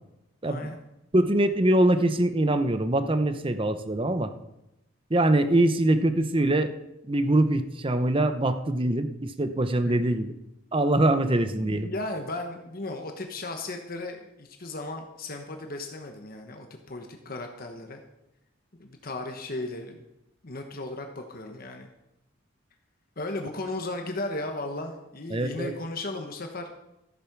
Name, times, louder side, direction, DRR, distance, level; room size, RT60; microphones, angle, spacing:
voice 1, 0.4-0.8 9.8-10.1 11.4-18.0 18.8-20.0 20.4-21.9 23.2-26.7, left 2 dB, 45° left, 4 dB, 1.1 m, -36 dB
voice 2, 1.1-4.3 5.1-6.7 7.0-10.3 10.7-11.9 25.3-25.7, right 1 dB, 25° right, 10 dB, 0.7 m, -23 dB
14.0 x 8.5 x 6.0 m, 0.90 s
head